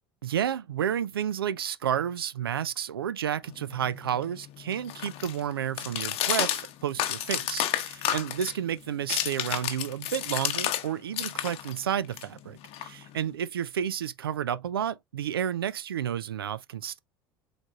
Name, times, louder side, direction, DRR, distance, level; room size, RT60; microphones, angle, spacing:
voice 1, 0.2-17.0, right 9 dB, 85° right, 0.4 m, -31 dB
sound 1, 3.5-10.9 11.1-13.3, left 12 dB, 55° left, 0.9 m, -32 dB
4.9 x 4.0 x 2.2 m
hypercardioid pair, 70°, 12 cm